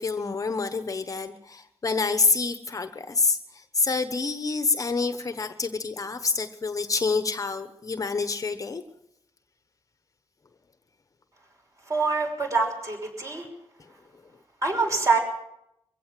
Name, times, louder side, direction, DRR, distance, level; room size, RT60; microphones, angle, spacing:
voice 1, 0.0-8.8, left 4 dB, 35° left, 10 dB, 1.1 m, -27 dB
voice 2, 11.9-13.5 14.6-15.2, right 4 dB, 30° right, 3 dB, 5.9 m, -25 dB
23.5 x 16.5 x 7.6 m, 0.78 s
wide cardioid pair, 150°, 10 cm